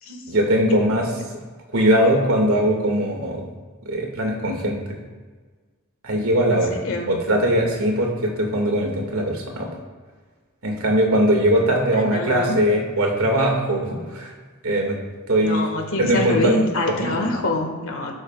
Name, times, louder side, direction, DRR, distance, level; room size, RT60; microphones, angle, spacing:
voice 1, 0.3-1.1 1.7-3.4 3.9-4.8 6.0-6.7 7.1-9.7 10.6-14.3 14.6-15.0 15.3-15.6 16.0-16.5 16.9-17.4, right 1 dB, 80° right, 0 dB, 2.2 m, -20 dB
voice 2, 6.8-7.2 11.9-12.6 15.4-18.1, left 2 dB, 70° left, 2 dB, 1.8 m, -25 dB
17.5 x 7.1 x 2.4 m, 1.4 s
head